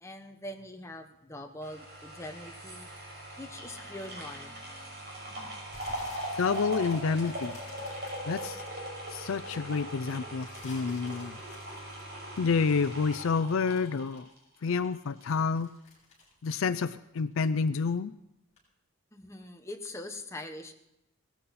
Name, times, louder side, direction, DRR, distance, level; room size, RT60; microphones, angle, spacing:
voice 1, 0.0-2.9 3.4-5.5 19.1-20.7, left 1 dB, 15° left, 4 dB, 1.1 m, -43 dB
sound 1, 1.6-14.9 15.2-15.3, right 1 dB, 50° right, 6.0 m, -40 dB
sound 2, 5.7-9.3 9.7-14.5 14.7-17.5 17.7-18.1 18.6-18.7, left 3 dB, 30° left, 7.4 m, -52 dB
voice 2, 6.4-7.6 8.3-8.6 9.1-11.4 12.4-14.3 14.6-15.7 16.4-18.1, left 5 dB, 65° left, 14 dB, 0.4 m, -29 dB
18.5 x 14.0 x 4.2 m, 0.83 s
head